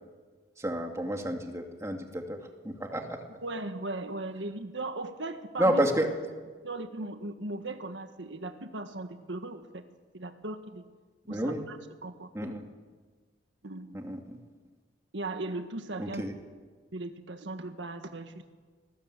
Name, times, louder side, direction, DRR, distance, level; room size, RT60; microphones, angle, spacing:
voice 1, 0.6-2.4 2.6-3.2 5.6-6.1 11.3-11.6 12.3-12.7 13.9-14.4 16.0-16.3, right 1 dB, 15° right, 3 dB, 2.6 m, -30 dB
voice 2, 3.3-5.8 6.6-9.8 10.1-10.8 11.3-11.8 12.0-12.6 13.6-14.0 15.1-16.2 16.9-18.6, right 2 dB, 85° right, 7 dB, 1.7 m, -38 dB
27.5 x 20.0 x 8.3 m, 1.5 s
head